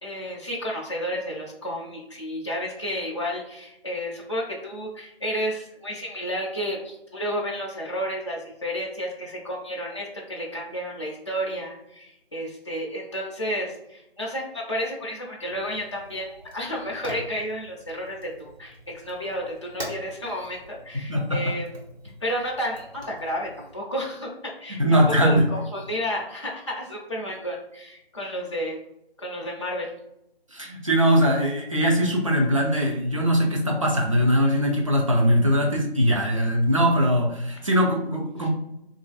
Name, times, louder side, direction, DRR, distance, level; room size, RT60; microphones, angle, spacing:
voice 1, 0.0-21.7 22.2-28.8 29.2-29.9 38.4-38.5, equal, 30° left, -3 dB, 0.4 m, -31 dB
Fire, 15.4-23.8, equal, 80° right, 1.2 m, -44 dB
voice 2, 21.1-21.5 24.7-25.5 30.5-38.5, equal, 35° right, -1 dB, 0.5 m, -21 dB
3.9 x 2.5 x 2.3 m, 0.82 s
figure-of-eight pair, 160°, 31 cm